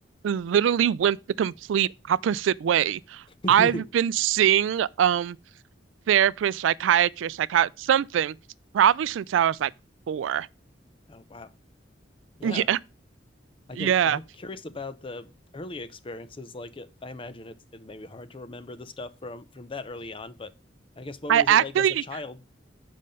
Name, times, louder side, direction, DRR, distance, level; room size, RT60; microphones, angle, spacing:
voice 1, 0.2-5.4 6.1-8.4 8.7-9.7 10.1-10.5 12.4-12.8 13.8-14.2 21.3-22.0, right 9 dB, 80° right, 0.3 m, -23 dB
voice 2, 3.4-3.9 11.1-11.5 12.4-12.7 13.7-20.5 21.0-22.4, left 2 dB, 30° left, 0.6 m, -38 dB
7.4 x 5.3 x 5.3 m
head